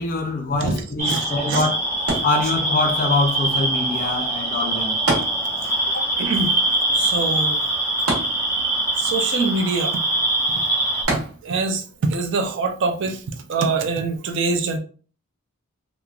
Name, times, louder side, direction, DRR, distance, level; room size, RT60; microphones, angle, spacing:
voice 1, 0.0-1.8 2.2-5.0 5.9-6.0, left 2 dB, 40° left, 0.5 m, -24 dB
sound 1, 1.0-11.0, right 1 dB, 10° right, 0.7 m, -23 dB
voice 2, 1.1-1.6 6.2-6.5 6.9-7.6 9.0-10.0 11.4-11.8 12.1-13.2 13.5-14.8, right 3 dB, 55° right, 0.4 m, -24 dB
sound 2, 2.1-3.0 5.1-5.9 6.2-6.3 8.1-8.9 11.1-11.8 12.5-12.6, right 2 dB, 80° right, 1.0 m, -26 dB
3.0 x 2.2 x 2.3 m
head